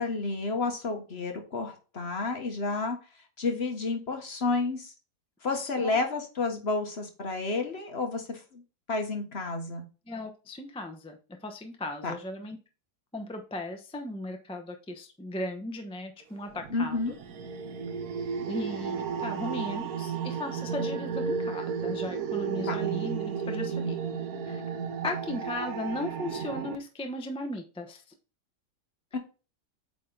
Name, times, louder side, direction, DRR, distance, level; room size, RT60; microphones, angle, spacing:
voice 1, 0.0-3.0 3.4-4.9 5.4-8.6 8.9-9.8 12.0-12.1 16.7-17.1 22.7-22.8 29.1-29.2, left 3 dB, 45° left, 4 dB, 1.3 m, -30 dB
voice 2, 5.5-6.0 10.1-12.6 13.1-17.0 18.3-24.0 24.5-24.6 25.0-28.0, left 1 dB, 5° left, 4 dB, 0.5 m, -37 dB
sound 1, 16.6-26.8, right 6 dB, 70° right, 1.3 m, -33 dB
8.5 x 3.7 x 3.9 m, 0.33 s
omnidirectional pair, 1.7 m